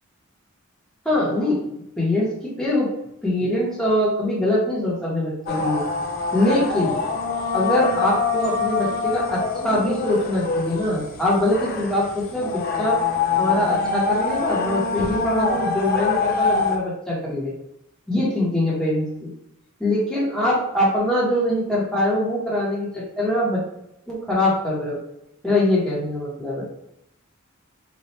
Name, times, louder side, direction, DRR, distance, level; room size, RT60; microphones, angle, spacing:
voice 1, 1.0-1.6 2.0-2.9 3.2-5.8 6.3-7.0 7.5-13.0 13.4-17.5 18.1-19.3 19.8-23.6 24.1-25.0 25.4-26.7, left 1 dB, 5° left, -7 dB, 1.2 m, -23 dB
sound 1, 5.5-16.8, left 4 dB, 45° left, 0.6 m, -25 dB
4.2 x 2.5 x 3.2 m, 0.81 s
head